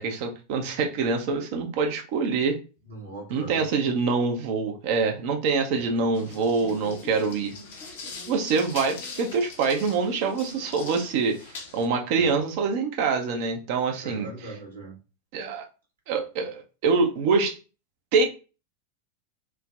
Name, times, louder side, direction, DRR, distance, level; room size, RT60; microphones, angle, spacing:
voice 1, 0.0-2.6 3.3-7.5 8.3-11.4 11.7-14.3 15.3-15.6 16.1-17.6 18.1-18.2, right 4 dB, 50° right, 0.5 m, -25 dB
voice 2, 2.8-3.6 5.8-6.0 12.1-12.4 14.0-15.0, right 2 dB, 70° right, 1.1 m, -41 dB
sound 1, 6.1-11.8, left 4 dB, 60° left, 0.7 m, -41 dB
3.2 x 2.0 x 2.3 m
figure-of-eight pair, 90°, 0 cm